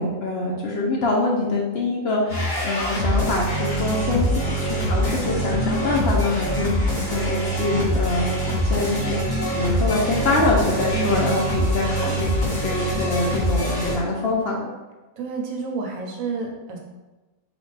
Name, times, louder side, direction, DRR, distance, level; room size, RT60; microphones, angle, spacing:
voice 1, 0.0-8.3 8.6-14.7, left 2 dB, 60° left, -2 dB, 0.8 m, -24 dB
sound 1, 2.3-13.9, equal, 35° left, 1.7 m, -24 dB
voice 2, 10.9-11.3 15.2-16.8, right 3 dB, 75° right, 1 dB, 1.1 m, -29 dB
5.0 x 2.3 x 3.3 m, 1.1 s
omnidirectional pair, 1.5 m